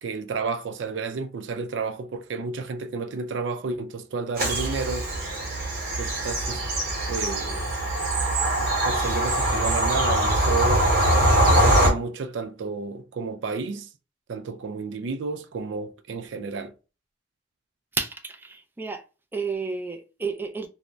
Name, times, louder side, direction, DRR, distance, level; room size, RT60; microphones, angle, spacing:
voice 1, 0.0-5.1 6.0-6.6 7.1-7.7 8.6-10.9 11.5-13.9 14.3-16.7, right 4 dB, 80° right, 0.4 m, -31 dB
Bird vocalization bird call bird song / Train, 4.4-11.9, right 1 dB, 55° right, 1.0 m, -22 dB
voice 2, 17.9-19.0 19.3-20.7, right 4 dB, 10° right, 0.4 m, -31 dB
2.5 x 2.1 x 3.1 m
head